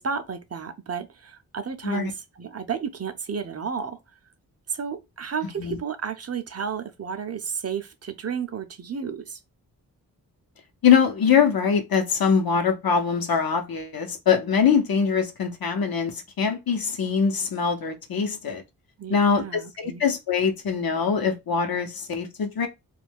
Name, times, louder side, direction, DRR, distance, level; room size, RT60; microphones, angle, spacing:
voice 1, 0.0-4.0 4.7-9.4 19.0-20.0, right 6 dB, 35° right, 0.6 m, -32 dB
voice 2, 10.8-18.6 19.1-22.7, left 6 dB, 60° left, 0.9 m, -23 dB
2.4 x 2.2 x 3.4 m
cardioid pair, 50°, 41 cm